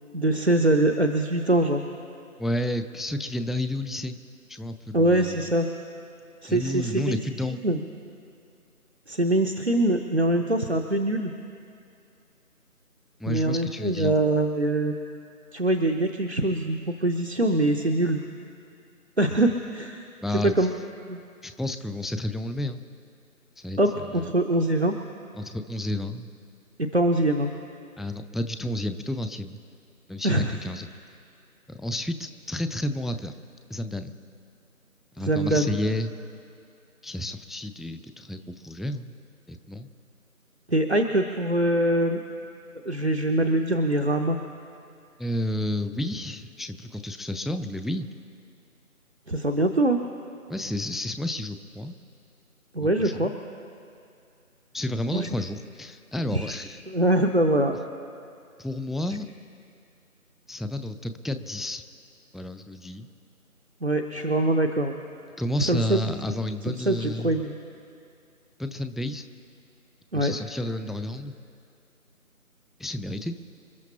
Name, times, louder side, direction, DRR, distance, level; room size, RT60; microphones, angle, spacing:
voice 1, 0.1-1.8 4.9-5.7 6.4-7.2 7.6-7.8 9.1-11.3 13.3-14.9 15.5-18.2 19.2-20.1 20.4-20.8 21.1-21.2 23.8-24.9 26.8-27.5 30.2-30.5 35.2-35.8 40.7-42.2 42.8-44.4 49.3-50.0 52.7-53.3 55.1-55.3 56.3-56.6 56.9-57.7 63.8-64.9 65.7-66.0 66.7-67.5 70.1-70.3, right 1 dB, 45° right, 5 dB, 0.7 m, -23 dB
voice 2, 2.4-4.2 4.5-5.5 6.5-7.6 13.2-14.1 20.2-20.7 21.4-22.9 23.6-24.3 25.3-26.3 28.0-29.6 30.1-30.9 31.7-33.3 33.7-34.1 35.2-36.1 37.0-39.1 39.5-39.9 45.2-48.1 50.5-52.0 52.8-53.3 54.7-56.8 58.6-59.3 60.5-61.8 62.3-63.1 65.4-67.4 68.6-69.3 70.1-71.3 72.8-73.4, left 1 dB, ahead, 10 dB, 0.4 m, -31 dB
28.5 x 12.5 x 2.9 m, 2.5 s
figure-of-eight pair, 175°, 44 cm